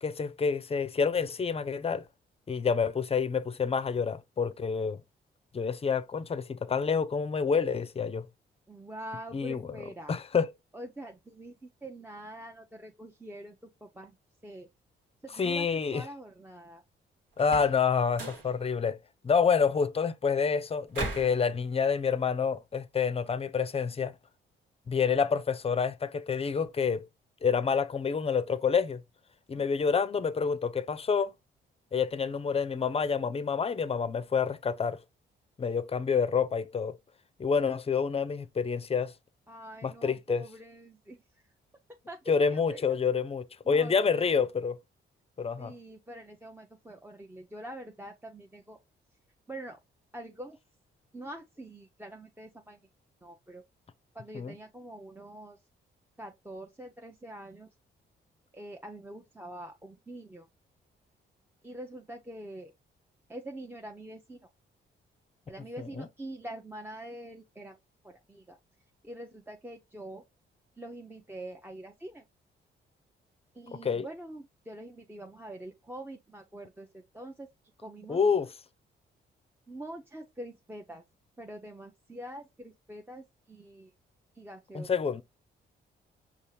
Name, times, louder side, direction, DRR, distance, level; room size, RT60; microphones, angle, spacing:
voice 1, 0.0-2.0 2.5-5.0 5.5-8.3 9.3-9.8 10.1-10.5 15.4-16.0 17.4-19.0 19.2-24.1 24.9-27.1 27.4-29.0 29.5-31.3 31.9-35.0 35.6-37.0 37.4-39.1 39.8-40.4 42.3-44.8 45.4-45.7 54.3-54.5 65.8-66.1 73.8-74.1 78.1-78.5 84.7-85.2, left 6 dB, 30° left, 0.5 m, -28 dB
voice 2, 8.7-10.2 10.7-14.2 14.4-14.7 15.2-16.8 24.9-25.0 29.5-29.7 39.5-41.4 42.1-42.8 43.6-44.2 45.6-48.8 49.5-49.8 50.1-50.6 51.1-52.8 53.2-53.6 54.1-55.6 56.2-57.7 58.5-60.5 61.6-62.7 63.3-64.4 65.5-67.8 68.0-68.6 69.0-70.2 70.8-72.2 73.5-77.5 77.8-78.2 79.7-81.0 81.4-83.9 84.3-84.9, right 1 dB, 10° right, 0.6 m, -45 dB
sound 1, 17.4-17.8 18.1-18.5 20.9-21.4, right 3 dB, 80° right, 1.4 m, -36 dB
5.4 x 2.4 x 3.1 m
cardioid pair, 65°, 20 cm